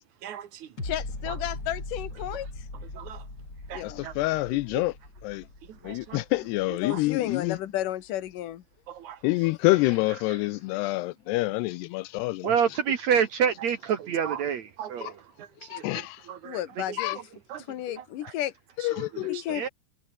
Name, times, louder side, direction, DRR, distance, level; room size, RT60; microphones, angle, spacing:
voice 1, 0.2-0.8 1.3-1.4 2.9-3.3 3.7-4.2 4.7-4.8 5.6-6.2 6.7-7.0 8.9-9.2 10.3-10.4 14.0-14.4 14.8-16.6 16.9-17.2 17.5-18.3 18.8-19.6, right 10 dB, 55° right, 2.3 m, -42 dB
voice 2, 0.8-2.5 3.7-4.1 6.8-8.6 16.4-17.2 17.7-18.5 19.3-19.7, left 13 dB, 60° left, 2.4 m, -33 dB
sound 1, 0.8-7.8 8.3-8.4, left 2 dB, 20° left, 8.2 m, -40 dB
voice 3, 3.8-4.9 5.2-5.4 5.8-7.6 9.2-12.5 15.0-15.1 15.7-16.2 17.0-17.2 18.8-19.4, left 20 dB, 85° left, 2.4 m, -27 dB
voice 4, 12.4-14.6 14.9-15.1 19.5-19.7, right 8 dB, 75° right, 1.6 m, -25 dB
omnidirectional pair, 5.3 m